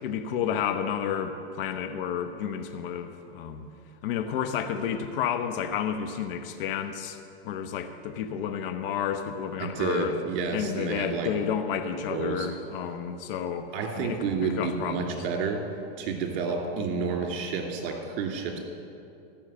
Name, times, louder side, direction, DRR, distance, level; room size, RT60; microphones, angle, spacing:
voice 1, 0.0-3.7 4.0-7.2 7.4-10.2 10.5-14.3 14.6-15.2, left 8 dB, 60° left, 7 dB, 1.0 m, -31 dB
voice 2, 9.6-11.3 12.1-12.5 13.7-15.6 16.0-18.6, right 5 dB, 55° right, 2 dB, 2.8 m, -30 dB
14.0 x 6.3 x 8.8 m, 2.6 s
hypercardioid pair, 125°, 31 cm